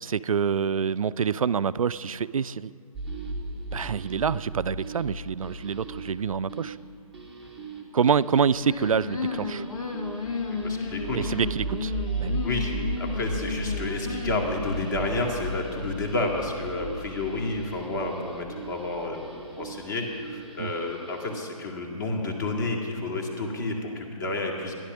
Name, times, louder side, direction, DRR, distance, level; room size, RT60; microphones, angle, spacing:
voice 1, 0.0-2.7 3.7-6.8 7.9-9.6 11.1-11.9 12.2-12.4 20.6-20.7, right 6 dB, 65° right, 17 dB, 0.4 m, -26 dB
sound 1, 2.9-21.4, right 2 dB, ahead, 0.8 m, -36 dB
sound 2, 8.6-15.0, left 4 dB, 70° left, 1.6 m, -33 dB
voice 2, 10.5-11.3 12.4-24.7, left 2 dB, 35° left, 1 dB, 2.1 m, -30 dB
14.5 x 11.0 x 6.2 m, 2.3 s
figure-of-eight pair, 145°, 19 cm